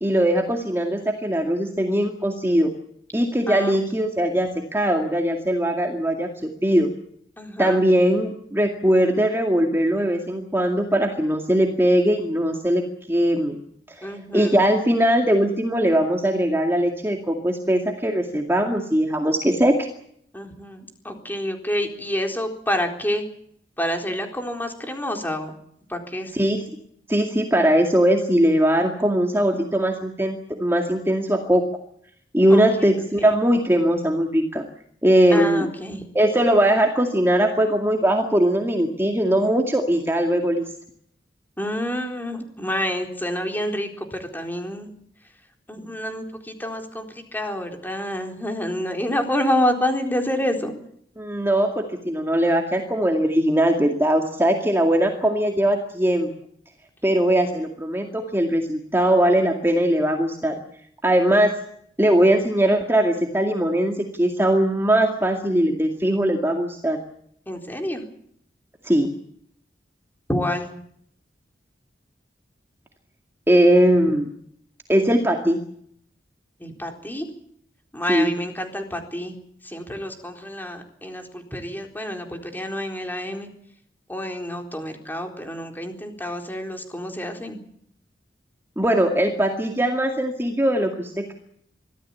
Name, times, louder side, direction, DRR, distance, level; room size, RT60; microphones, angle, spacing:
voice 1, 0.0-2.7 3.1-6.3 6.6-6.9 7.6-12.8 13.1-13.6 14.0-14.1 14.3-19.7 26.3-26.6 27.1-31.6 32.3-34.6 35.0-35.7 36.1-40.6 51.2-56.3 57.0-60.6 61.0-61.5 62.0-67.0 68.8-69.1 73.5-74.3 74.9-75.6 78.1-78.3 88.8-91.3, right 1 dB, 15° right, 3 dB, 2.2 m, -20 dB
voice 2, 3.5-3.8 7.4-7.8 14.0-14.5 20.3-23.2 23.8-25.5 25.9-26.3 32.5-32.6 32.9-33.3 35.3-36.0 41.6-44.9 45.7-50.7 67.5-68.0 70.3-70.7 76.6-77.3 77.9-79.4 79.6-83.5 84.1-87.6, left 1 dB, 10° left, 4 dB, 4.1 m, -28 dB
24.5 x 16.0 x 8.6 m, 0.67 s
head